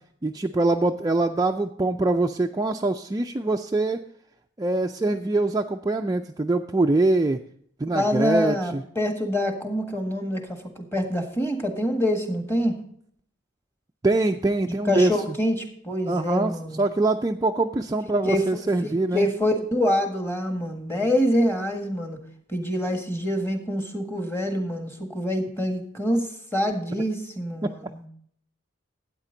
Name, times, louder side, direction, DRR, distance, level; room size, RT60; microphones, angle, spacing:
voice 1, 0.2-4.0 4.6-7.4 7.8-8.8 14.0-15.1 16.1-19.3, right 2 dB, 20° right, 4 dB, 0.3 m, -23 dB
voice 2, 7.9-12.8 14.6-16.8 18.2-18.6 19.1-22.2 22.5-28.0, equal, 10° left, 4 dB, 1.6 m, -26 dB
12.5 x 9.0 x 3.8 m, 0.63 s
head